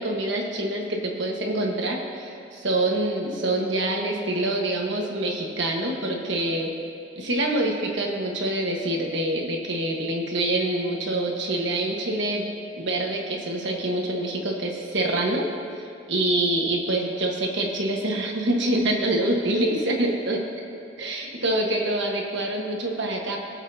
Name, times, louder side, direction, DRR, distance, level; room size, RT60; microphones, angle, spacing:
voice 1, 0.0-6.7 7.1-12.5 12.8-15.5 15.8-20.4 21.0-23.4, right 1 dB, 65° right, 0 dB, 1.4 m, -26 dB
20.0 x 7.6 x 2.8 m, 2.5 s
head